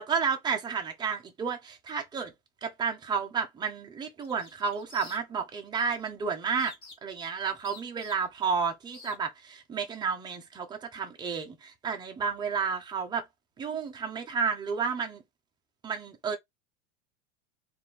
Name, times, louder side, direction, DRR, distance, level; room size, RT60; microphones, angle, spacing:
voice 1, 0.0-2.3 2.6-6.7 7.0-13.2 13.6-15.2 15.8-16.4, right 6 dB, 10° right, 0.6 m, -31 dB
sound 1, 4.2-5.5 5.8-6.1 6.6-7.2 7.6-8.5 8.9-9.2, left 3 dB, 25° left, 1.4 m, -48 dB
3.5 x 2.6 x 4.2 m
supercardioid pair, 150°, 41 cm